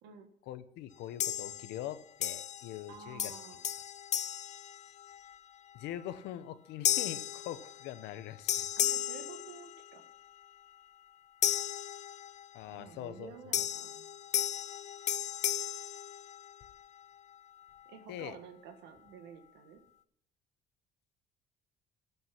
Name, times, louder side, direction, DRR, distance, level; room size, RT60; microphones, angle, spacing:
voice 1, 0.4-3.3 5.7-8.7 12.5-13.3 13.6-13.7 18.1-18.4, left 12 dB, 90° left, 13 dB, 0.9 m, -43 dB
sound 1, 1.2-1.9 2.2-2.9 3.2-5.4 5.9-6.1 6.8-8.2 8.5-10.1 11.4-12.6 13.5-16.8, left 10 dB, 45° left, 0.5 m, -35 dB
voice 2, 2.9-3.6 8.8-10.1 12.7-14.1 17.8-19.8, right 6 dB, 90° right, 6 dB, 1.6 m, -51 dB
16.5 x 5.6 x 5.9 m, 0.70 s
cardioid pair, 110°, 17 cm